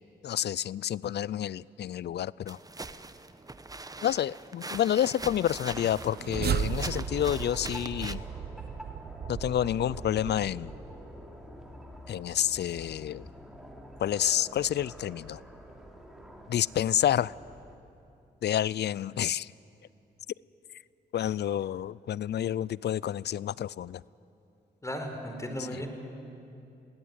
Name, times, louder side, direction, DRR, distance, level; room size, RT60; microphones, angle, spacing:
voice 1, 0.2-2.6 4.0-8.2 9.3-10.8 12.1-13.3 14.0-15.4 16.5-17.3 18.4-19.5 21.1-24.0 25.7-25.8, left 11 dB, 60° left, 23 dB, 0.4 m, -29 dB
sound 1, 2.5-8.2, right 2 dB, 20° right, 1.0 m, -42 dB
sound 2, 5.2-17.8, equal, ahead, 3.3 m, -46 dB
sound 3, 5.8-11.1, right 8 dB, 55° right, 0.7 m, -35 dB
voice 2, 24.8-25.9, equal, 15° left, 4 dB, 4.5 m, -35 dB
22.5 x 18.0 x 9.8 m, 2.7 s
cardioid pair, 65°, 19 cm